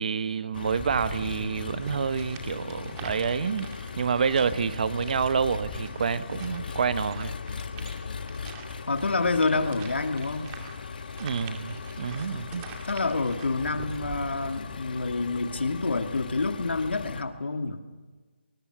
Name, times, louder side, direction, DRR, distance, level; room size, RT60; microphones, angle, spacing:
voice 1, 0.0-7.3 11.2-12.6, right 6 dB, 45° right, 13 dB, 1.0 m, -28 dB
Engine, 0.5-17.2, left 5 dB, 55° left, 1.4 m, -38 dB
sound 1, 0.8-14.7, right 5 dB, 20° right, 2.4 m, -45 dB
voice 2, 8.9-10.5 12.9-17.8, left 3 dB, 75° left, 6 dB, 2.3 m, -28 dB
25.0 x 21.0 x 6.8 m, 1.3 s
figure-of-eight pair, 160°, 6 cm